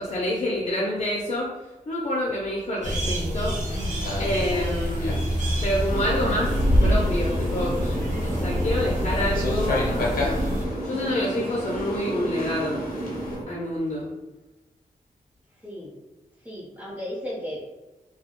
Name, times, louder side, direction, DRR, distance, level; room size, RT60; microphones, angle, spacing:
voice 1, 0.0-1.5 1.9-3.6 4.2-5.3 5.6-6.5 6.8-8.0 8.3-10.4 10.8-12.8 13.5-14.1, left 1 dB, 45° left, -3 dB, 0.5 m, -27 dB
sound 1, 2.8-10.6, equal, 60° right, 0.7 m, -27 dB
sound 2, 3.7-13.4, left 1 dB, 90° left, 0.6 m, -29 dB
sound 3, 5.9-13.4, right 1 dB, 80° right, 1.0 m, -32 dB
voice 2, 15.6-15.9 16.4-17.6, equal, 10° right, -6 dB, 0.7 m, -35 dB
2.2 x 2.0 x 2.9 m, 1.1 s
wide cardioid pair, 110°, 14 cm